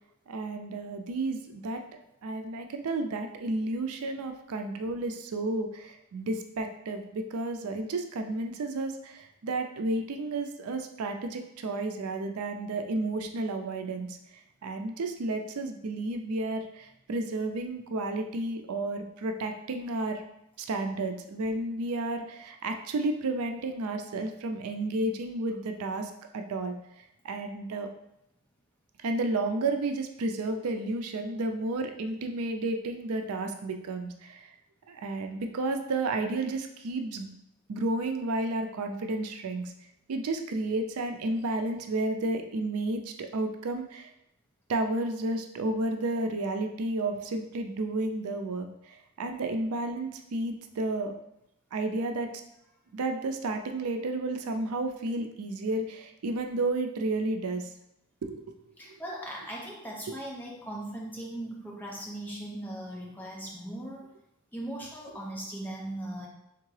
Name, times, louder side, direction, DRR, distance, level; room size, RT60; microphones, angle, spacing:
voice 1, 0.3-1.8 2.2-14.2 14.6-20.2 20.6-26.7 27.2-27.9 29.0-34.5 34.9-37.3 37.7-39.7 40.1-44.1 44.7-51.2 51.7-52.3 52.9-57.7 58.2-58.5 60.1-60.2, right 2 dB, 80° right, 5 dB, 0.4 m, -32 dB
voice 2, 58.8-64.0 64.5-66.3, right 1 dB, 10° left, -3 dB, 0.8 m, -39 dB
3.6 x 3.5 x 3.2 m, 0.82 s
head